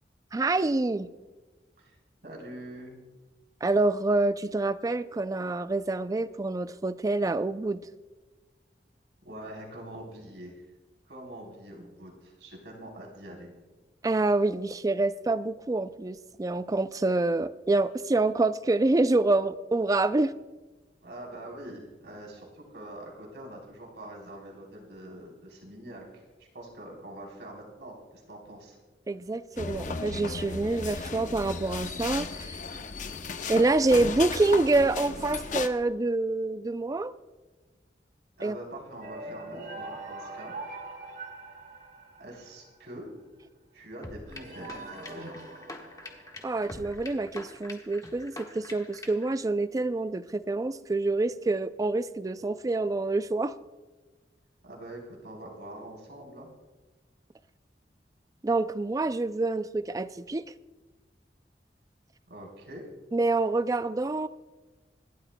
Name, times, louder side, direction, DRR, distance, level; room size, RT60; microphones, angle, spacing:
voice 1, 0.3-1.1 3.6-7.8 14.0-20.3 29.1-32.6 33.5-37.1 38.4-38.6 46.4-53.5 58.4-60.4 63.1-64.3, right 2 dB, 20° right, 13 dB, 0.3 m, -27 dB
voice 2, 1.8-3.0 9.2-10.7 11.1-13.5 21.0-26.2 26.5-28.0 28.3-28.8 38.4-40.5 42.2-43.1 43.7-45.4 54.6-56.5 62.3-62.9, right 1 dB, 80° right, -1 dB, 3.6 m, -44 dB
sound 1, 29.6-35.7, left 4 dB, 45° left, 0.7 m, -35 dB
sound 2, 39.0-42.7 44.3-46.9, right 2 dB, 55° right, 1.8 m, -42 dB
sound 3, 44.0-49.3, left 2 dB, 20° left, 1.4 m, -45 dB
27.0 x 12.0 x 2.2 m, 1.2 s
head